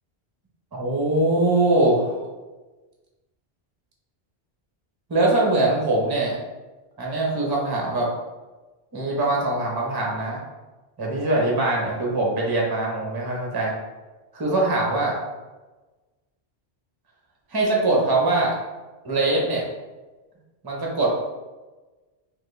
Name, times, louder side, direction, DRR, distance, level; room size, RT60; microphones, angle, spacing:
voice 1, 0.7-2.2 5.1-6.4 7.0-8.1 8.9-10.4 11.0-13.7 14.3-15.2 17.5-18.5 19.0-19.7 20.6-21.1, right 2 dB, 25° right, -2 dB, 0.7 m, -22 dB
4.2 x 2.6 x 3.2 m, 1.2 s
omnidirectional pair, 1.1 m